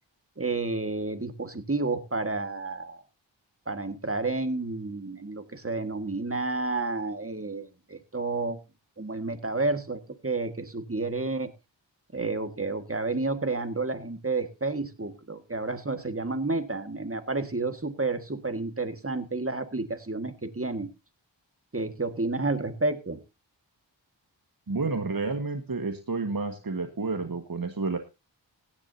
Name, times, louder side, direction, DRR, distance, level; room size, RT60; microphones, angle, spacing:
voice 1, 0.4-3.0 3.7-8.6 9.0-11.5 12.1-20.9 21.7-23.2, right 3 dB, 30° right, 9 dB, 1.8 m, -30 dB
voice 2, 24.7-28.0, right 3 dB, 50° right, 6 dB, 1.6 m, -30 dB
16.5 x 11.0 x 2.8 m, 0.27 s
wide cardioid pair, 40°, 44 cm